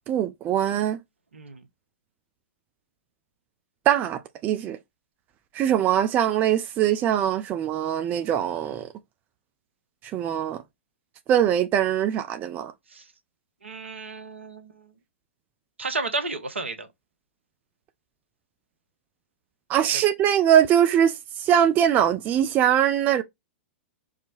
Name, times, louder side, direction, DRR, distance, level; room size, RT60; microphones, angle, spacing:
voice 1, 0.1-1.0 3.9-4.8 5.5-8.9 10.1-10.6 11.3-12.7 19.7-23.2, right 10 dB, 25° right, 0.4 m, -22 dB
voice 2, 1.3-1.6 12.9-13.0 13.6-14.9 15.8-16.9 19.9-20.0, right 3 dB, 75° right, 0.9 m, -32 dB
4.9 x 2.1 x 2.5 m
figure-of-eight pair, 100°, 6 cm